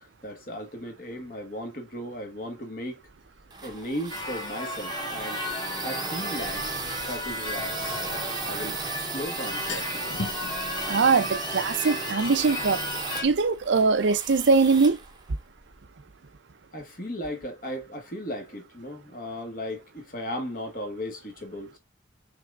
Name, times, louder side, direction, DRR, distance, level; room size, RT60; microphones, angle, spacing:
voice 1, 0.0-3.0 3.6-5.4 5.8-6.8 7.0-8.0 8.4-10.0 16.7-21.8, equal, 45° left, 1.4 m, -36 dB
sound 1, 3.1-15.8, right 5 dB, 20° right, 0.8 m, -37 dB
Church bell / Car / Alarm, 4.1-13.2, left 1 dB, 20° left, 1.4 m, -34 dB
sound 2, 5.1-5.2 7.6-8.9 9.2-9.3 9.5-10.5, left 2 dB, 80° left, 0.8 m, -37 dB
voice 2, 10.9-12.8 13.2-15.0, right 4 dB, 80° right, 0.6 m, -22 dB
5.8 x 3.5 x 2.4 m
head